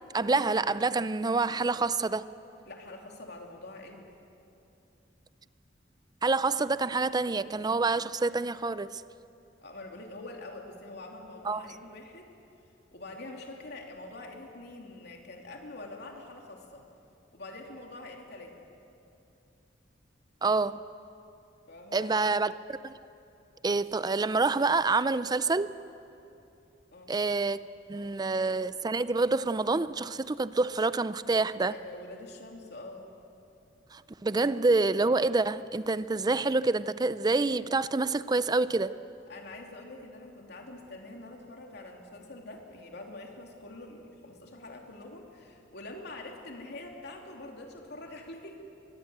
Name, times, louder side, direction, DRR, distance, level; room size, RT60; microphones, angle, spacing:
voice 1, 0.1-2.3 6.2-9.0 11.4-11.6 20.4-20.8 21.9-22.5 22.8-22.9 23.6-25.7 27.1-27.6 27.9-31.7 33.9-39.0, right 3 dB, 20° right, 0.5 m, -27 dB
voice 2, 2.7-4.1 9.6-12.3 12.9-16.8 17.3-18.7 21.7-22.2 26.9-27.2 31.7-33.1 39.3-48.7, left 2 dB, 65° left, 3.1 m, -45 dB
23.5 x 21.0 x 8.0 m
head